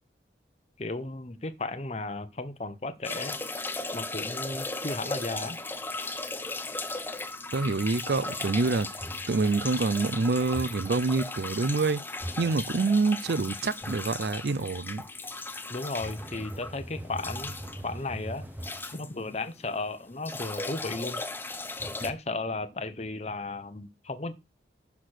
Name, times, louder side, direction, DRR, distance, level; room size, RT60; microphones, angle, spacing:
voice 1, 0.8-3.4 3.9-5.6 15.7-17.5 17.8-18.4 18.9-21.2 22.0-24.3, left 2 dB, 35° left, 0.9 m, -34 dB
sound 1, 3.0-19.7 20.0-22.1, left 3 dB, 10° left, 0.6 m, -37 dB
voice 2, 7.5-8.9 9.3-12.0 12.4-15.0, right 3 dB, 65° right, 0.5 m, -26 dB
sound 2, 9.0-9.4 10.5-11.0 12.2-12.6 13.8-14.2 16.0-18.9 21.8-22.1, equal, 10° right, 0.9 m, -41 dB
6.3 x 5.9 x 6.5 m
head